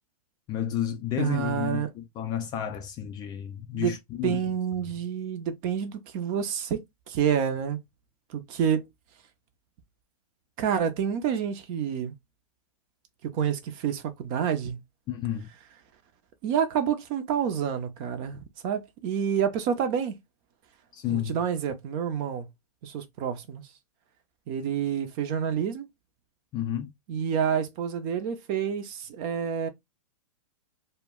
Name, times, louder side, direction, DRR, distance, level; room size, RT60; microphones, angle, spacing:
voice 1, 0.5-4.4 15.1-15.5 20.9-21.4 26.5-26.9, left 10 dB, 20° left, 0.3 m, -31 dB
voice 2, 1.2-1.9 3.7-4.0 4.2-7.8 8.3-8.9 10.6-12.1 13.2-14.8 16.4-20.1 21.1-22.5 22.8-23.6 24.5-25.9 27.1-29.7, right 8 dB, 35° right, 0.5 m, -28 dB
2.2 x 2.1 x 3.5 m
hypercardioid pair, 125°, 19 cm